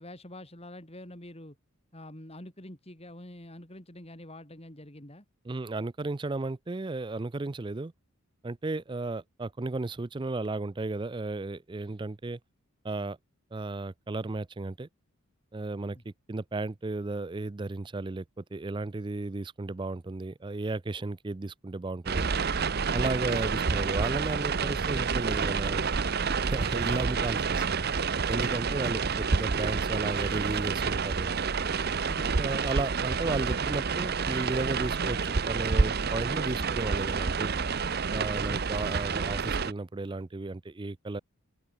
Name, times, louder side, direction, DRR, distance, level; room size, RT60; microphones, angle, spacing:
voice 1, 0.0-1.6 1.9-5.3 15.9-16.0 28.7-28.8 32.1-32.3, left 1 dB, 25° left, 3.6 m, -46 dB
voice 2, 5.4-7.9 8.4-12.4 12.8-13.2 13.5-14.9 15.5-16.0 16.3-22.3 22.9-25.8 26.4-27.9 28.3-31.3 32.4-37.5 38.1-41.2, right 2 dB, 20° right, 0.4 m, -34 dB
sound 1, 22.1-39.7, right 5 dB, 45° right, 0.7 m, -29 dB
head